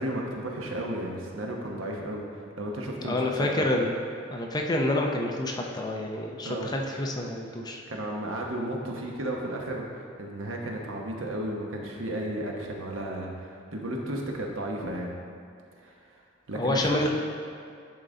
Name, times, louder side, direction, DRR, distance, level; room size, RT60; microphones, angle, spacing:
voice 1, 0.0-2.2 2.6-3.7 6.4-6.8 7.9-15.1 15.8-15.9 16.5-17.0, right 1 dB, 85° right, 0 dB, 1.0 m, -33 dB
voice 2, 3.0-4.0 4.3-7.8 16.5-17.1, left 1 dB, 20° left, 1 dB, 0.5 m, -28 dB
10.5 x 3.9 x 3.8 m, 2.4 s
head